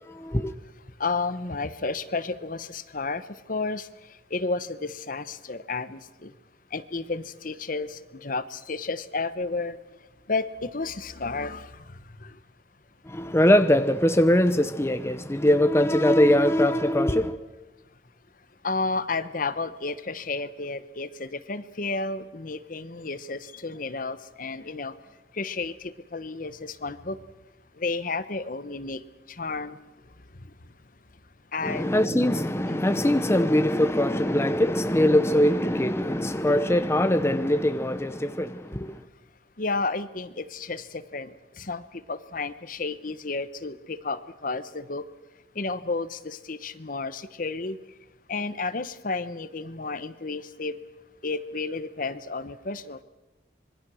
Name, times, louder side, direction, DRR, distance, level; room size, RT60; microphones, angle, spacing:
voice 1, 0.1-0.5 13.0-17.4 31.6-39.0, left 1 dB, 15° left, 0.8 m, -22 dB
voice 2, 1.0-3.9 4.3-6.3 6.7-9.8 10.3-11.7 12.2-12.4 18.6-24.9 25.3-27.2 27.8-29.0 29.3-29.8 31.5-31.9 32.7-33.0 39.6-45.0 45.5-47.8 48.3-50.8 51.2-53.0, left 3 dB, 50° left, 1.0 m, -32 dB
26.0 x 22.5 x 6.4 m
head